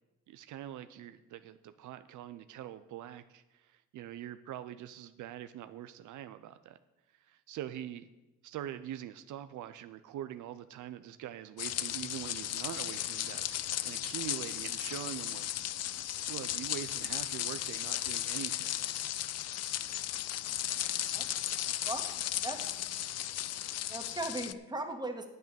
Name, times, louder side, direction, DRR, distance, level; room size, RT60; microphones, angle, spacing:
voice 1, 0.3-6.8 7.2-8.1 8.4-13.6 13.8-15.5 16.3-18.9, right 11 dB, 75° right, 12 dB, 0.6 m, -43 dB
sound 1, 11.6-24.5, left 12 dB, 55° left, 0.5 m, -35 dB
voice 2, 21.5-22.0 22.3-22.6 23.9-25.3, right 2 dB, 15° right, 4 dB, 1.7 m, -38 dB
9.2 x 8.1 x 6.9 m, 1.0 s
cardioid pair, 90°, 30 cm